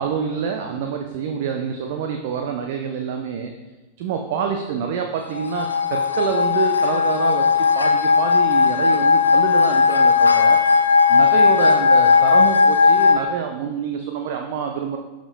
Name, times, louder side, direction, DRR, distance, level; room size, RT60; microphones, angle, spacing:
voice 1, 0.0-3.5 4.0-10.6 11.1-15.0, right 6 dB, 50° right, 4 dB, 0.6 m, -26 dB
sound 1, 5.4-13.1, left 5 dB, 75° left, 0.6 m, -16 dB
12.0 x 5.1 x 2.3 m, 1.2 s
figure-of-eight pair, 90°, 0 cm